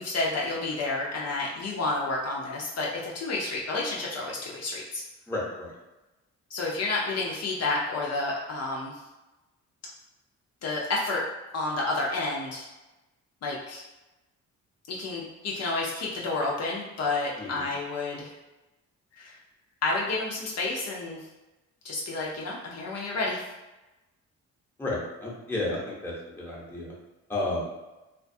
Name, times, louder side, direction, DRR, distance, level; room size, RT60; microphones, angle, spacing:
voice 1, 0.0-5.0 6.5-9.0 10.6-11.2 11.5-12.7 13.4-13.8 14.9-18.3 19.2-19.3 19.8-21.2 21.8-23.4, left 3 dB, 55° left, -3 dB, 0.6 m, -30 dB
voice 2, 5.3-5.7 17.4-17.7 24.8-26.9 27.3-27.6, left 2 dB, 5° left, -6 dB, 0.8 m, -32 dB
2.5 x 2.3 x 2.6 m, 1.1 s
cardioid pair, 90°, 30 cm